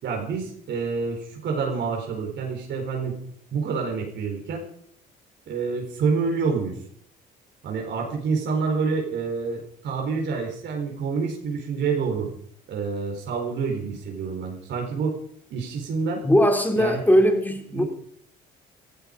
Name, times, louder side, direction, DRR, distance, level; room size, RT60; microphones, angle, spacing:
voice 1, 0.0-3.2 3.5-4.6 5.5-6.7 7.6-12.3 12.7-15.2 15.5-16.2 16.8-17.0 17.7-17.8, right 5 dB, 65° right, 0 dB, 4.3 m, -27 dB
voice 2, 16.2-17.8, equal, 10° left, 5 dB, 3.4 m, -19 dB
16.0 x 14.5 x 5.2 m, 0.66 s
supercardioid pair, 75°, 20 cm